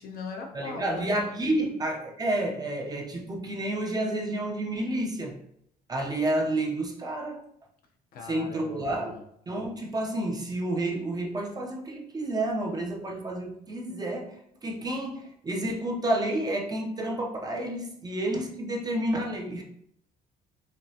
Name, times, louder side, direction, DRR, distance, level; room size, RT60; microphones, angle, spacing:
voice 1, 0.0-1.7 8.1-9.2, left 4 dB, 60° left, 2 dB, 0.8 m, -40 dB
voice 2, 0.5-5.4 5.9-7.4 8.2-9.2 9.5-19.6, right 1 dB, 25° right, 0 dB, 0.7 m, -30 dB
5.0 x 2.3 x 2.8 m, 0.73 s
cardioid pair, 110°, 17 cm